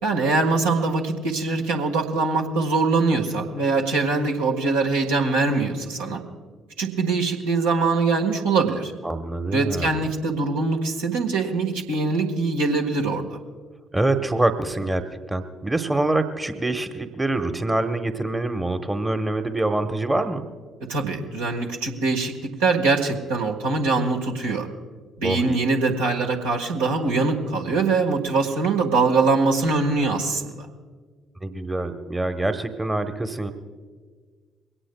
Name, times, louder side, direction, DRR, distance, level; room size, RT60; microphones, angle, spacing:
voice 1, 0.0-6.2 6.8-8.9 9.5-13.3 20.9-22.3 22.6-24.7 25.2-30.7, right 3 dB, 75° right, 0 dB, 1.6 m, -23 dB
voice 2, 9.0-10.1 13.9-15.0 15.3-20.5 25.2-25.6 31.4-33.5, right 2 dB, 15° right, 8 dB, 1.1 m, -25 dB
22.5 x 17.5 x 2.3 m, 1.5 s
figure-of-eight pair, 45°, 0 cm